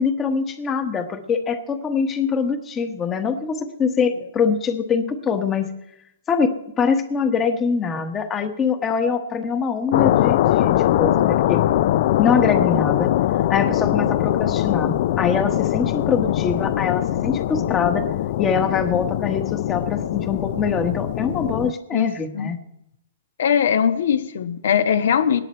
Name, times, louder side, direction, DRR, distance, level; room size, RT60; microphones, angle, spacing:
voice 1, 0.0-5.7 6.3-11.6 12.2-13.1 13.5-18.1 18.4-22.6, left 6 dB, 15° left, 8 dB, 1.2 m, -23 dB
sound 1, 9.9-21.7, left 13 dB, 50° left, 0.4 m, -21 dB
voice 2, 23.4-25.4, left 8 dB, 70° left, 10 dB, 1.2 m, -20 dB
18.5 x 10.5 x 4.4 m, 0.81 s
hypercardioid pair, 150°, 0 cm